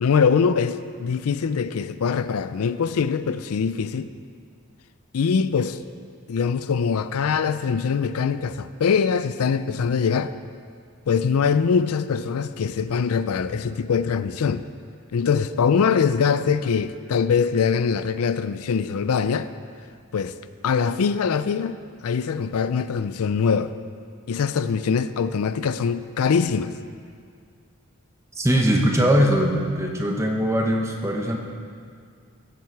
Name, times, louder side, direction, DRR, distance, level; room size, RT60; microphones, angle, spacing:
voice 1, 0.0-4.1 5.1-5.8 6.3-10.3 11.1-14.6 15.1-19.5 20.1-20.3 20.6-23.7 24.3-26.7, left 6 dB, 90° left, 13 dB, 0.4 m, -23 dB
voice 2, 28.3-31.4, equal, 15° right, 1 dB, 0.9 m, -21 dB
15.5 x 7.6 x 4.7 m, 2.1 s
head